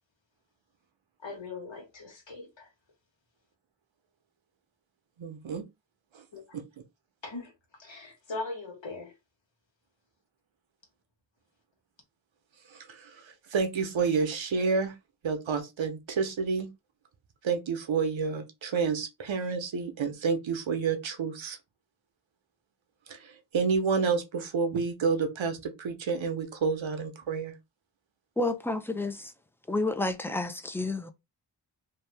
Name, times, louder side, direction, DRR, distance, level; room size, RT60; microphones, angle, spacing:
voice 1, 1.2-2.7 6.3-6.6 7.2-7.5 7.8-9.1, left 3 dB, 75° left, 1.3 m, -40 dB
voice 2, 5.2-5.6 6.1-6.2 6.5-6.6 12.7-14.9 15.2-16.7 17.4-21.6 23.1-27.6, right 5 dB, 85° right, 0.8 m, -29 dB
voice 3, 28.4-29.3 29.7-31.1, left 2 dB, 5° left, 0.4 m, -30 dB
2.8 x 2.3 x 3.3 m
wide cardioid pair, 55°, 45 cm